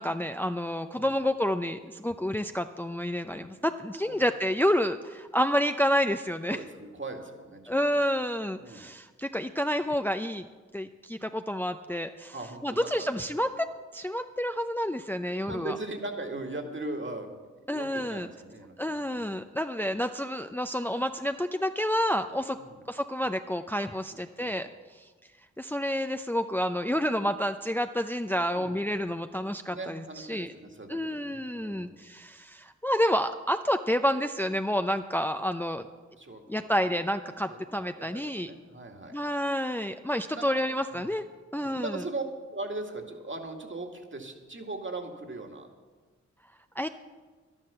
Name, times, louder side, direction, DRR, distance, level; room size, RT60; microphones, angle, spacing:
voice 1, 0.0-6.6 7.7-10.5 10.7-12.3 12.6-13.7 13.9-15.8 17.7-18.3 18.8-22.6 22.9-25.1 25.6-30.5 30.9-35.9 36.5-38.5 39.1-41.2 41.5-42.0 46.8-46.9, equal, 5° left, 8 dB, 0.5 m, -29 dB
voice 2, 6.5-8.0 8.5-8.9 12.3-13.1 15.3-17.3 17.7-19.3 22.5-22.8 24.4-24.5 28.5-28.7 29.7-31.9 36.2-36.4 36.8-36.9 37.5-39.1 40.3-40.6 40.9-41.1 41.5-42.2 42.5-45.7, right 2 dB, 40° right, 3 dB, 2.1 m, -39 dB
11.5 x 11.0 x 6.9 m, 1.4 s
cardioid pair, 50°, 29 cm